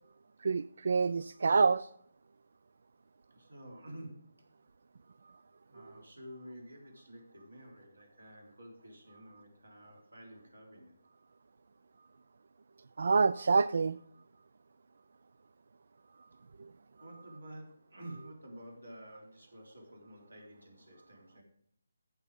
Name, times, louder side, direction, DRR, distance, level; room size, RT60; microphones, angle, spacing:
voice 1, 0.4-1.9 13.0-14.0, right 4 dB, 55° right, 15 dB, 0.3 m, -27 dB
voice 2, 3.3-4.4 5.7-11.0 17.0-21.4, right 1 dB, 80° right, -1 dB, 4.2 m, -50 dB
14.5 x 7.0 x 3.6 m, 0.69 s
figure-of-eight pair, 150°, 0 cm